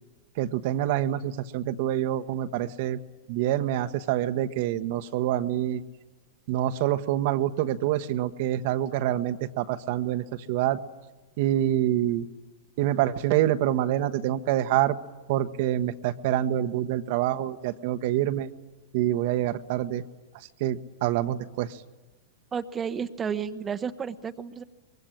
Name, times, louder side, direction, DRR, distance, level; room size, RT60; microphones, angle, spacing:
voice 1, 0.4-3.0 3.3-5.8 6.5-10.8 11.4-12.2 12.8-14.9 15.3-18.5 18.9-20.0 20.6-21.7, right 12 dB, 50° right, 9 dB, 1.1 m, -26 dB
voice 2, 22.5-24.6, right 7 dB, 20° right, 8 dB, 1.0 m, -32 dB
24.5 x 22.0 x 8.8 m, 1.2 s
figure-of-eight pair, 100°, 0 cm